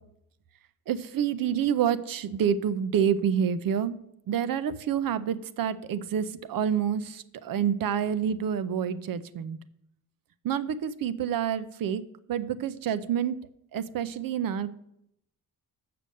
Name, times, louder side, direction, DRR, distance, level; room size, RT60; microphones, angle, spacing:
voice 1, 0.9-4.0 4.3-9.6 10.4-12.0 12.3-13.4 13.7-14.7, right 8 dB, 65° right, 15 dB, 0.6 m, -28 dB
6.8 x 6.8 x 7.6 m, 0.78 s
wide cardioid pair, 175°, 37 cm